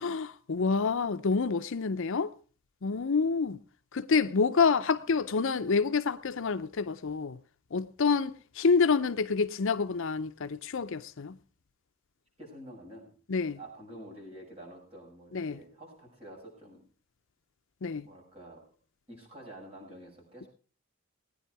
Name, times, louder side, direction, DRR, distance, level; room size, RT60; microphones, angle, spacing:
voice 1, 0.0-2.3 2.8-3.6 3.9-7.4 7.7-11.4 13.3-13.6 15.3-15.6 17.8-18.1, left 5 dB, 65° left, 0.6 m, -28 dB
voice 2, 12.4-13.1 13.6-16.8 18.0-18.6 19.1-20.5, right 1 dB, 30° right, 7.2 m, -48 dB
19.0 x 10.0 x 4.7 m
head